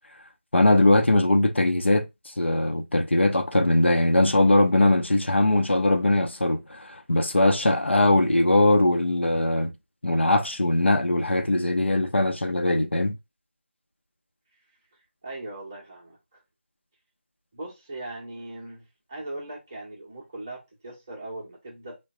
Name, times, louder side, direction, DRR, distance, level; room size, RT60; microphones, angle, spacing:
voice 1, 0.5-2.1 2.4-9.7 10.0-13.1, left 1 dB, 80° left, 0.7 m, -21 dB
voice 2, 15.2-16.4 17.5-22.0, right 2 dB, 15° right, 0.7 m, -39 dB
3.7 x 2.2 x 2.6 m
figure-of-eight pair, 170°, 6 cm